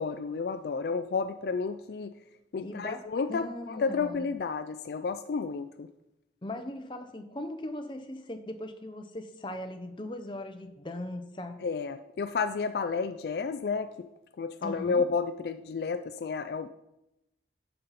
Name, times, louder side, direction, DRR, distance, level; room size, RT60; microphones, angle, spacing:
voice 1, 0.0-2.1 2.5-5.9 11.6-14.1 14.4-16.7, left 5 dB, 65° left, 10 dB, 0.3 m, -31 dB
voice 2, 2.6-3.0 3.3-4.3 6.4-11.6 14.6-15.0, left 1 dB, 25° left, 6 dB, 0.7 m, -39 dB
11.5 x 5.5 x 4.1 m, 0.91 s
head